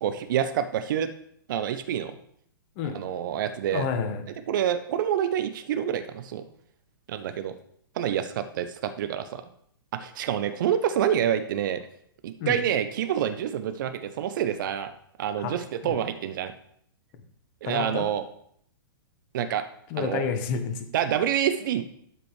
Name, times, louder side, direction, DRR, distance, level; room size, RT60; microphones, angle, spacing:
voice 1, 0.0-1.1 1.5-2.2 2.9-3.9 4.5-6.4 7.1-7.5 8.0-9.4 9.9-11.8 12.2-14.9 15.2-16.5 17.6-18.2 19.3-19.6 20.0-20.2 20.9-21.8, right 9 dB, 60° right, 11 dB, 0.7 m, -27 dB
voice 2, 3.7-4.2 12.4-12.6 15.4-15.5 15.8-16.0 17.6-18.1 19.9-20.9, left 6 dB, 40° left, 6 dB, 1.3 m, -29 dB
12.0 x 5.1 x 3.2 m, 0.67 s
hypercardioid pair, 115°, 12 cm